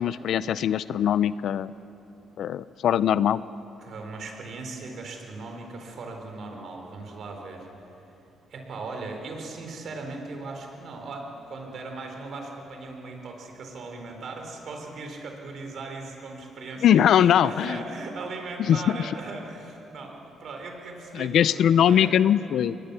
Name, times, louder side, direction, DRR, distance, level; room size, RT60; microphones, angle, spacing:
voice 1, 0.0-1.7 2.4-3.4 16.8-17.8 18.7-19.0 21.1-22.7, left 9 dB, 70° left, 17 dB, 0.5 m, -21 dB
voice 2, 3.8-7.7 8.5-22.1, right 3 dB, 60° right, 3 dB, 4.2 m, -38 dB
24.0 x 19.5 x 6.9 m, 3.0 s
cardioid pair, 90°, 0 cm